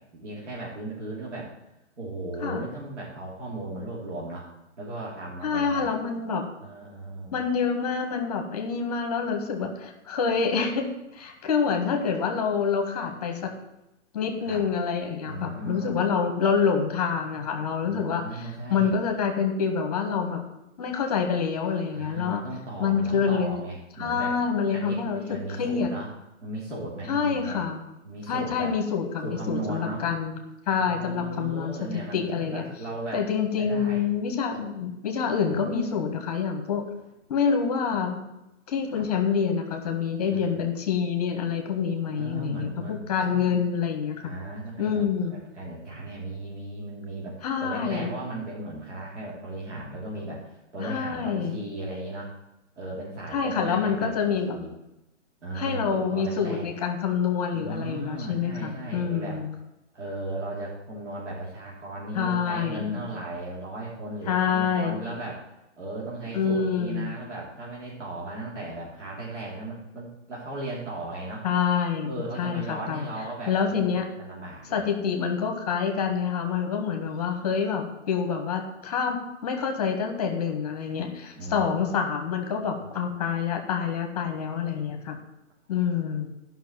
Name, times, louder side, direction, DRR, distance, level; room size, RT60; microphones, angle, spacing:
voice 1, 0.1-1.5 2.0-4.5 4.8-5.9 6.6-7.4 14.4-14.6 15.2-16.0 17.8-19.0 21.9-24.3 24.7-26.1 26.4-27.6 28.0-28.7 29.2-30.0 30.9-33.2 33.5-34.1 38.9-39.0 40.3-40.7 42.2-43.0 43.3-43.6 44.2-52.3 52.8-54.7 55.4-56.7 57.5-59.4 59.9-65.4 65.8-71.5 72.0-74.9 81.4-81.7, right 2 dB, 70° right, -5 dB, 3.5 m, -36 dB
voice 2, 5.4-6.4 7.3-13.5 14.1-20.4 20.8-22.4 22.8-23.6 24.0-25.2 25.6-25.9 27.1-27.8 28.3-30.4 30.7-32.6 33.1-36.8 37.3-38.2 38.7-44.3 44.8-45.3 47.4-48.1 50.8-51.6 53.3-54.6 55.5-59.5 62.1-63.0 64.3-65.0 66.3-67.1 71.4-73.0 73.5-74.1 74.7-85.2 85.7-86.3, left 6 dB, 10° left, 4 dB, 1.0 m, -27 dB
11.5 x 5.7 x 7.3 m, 0.92 s
hypercardioid pair, 175°, 36 cm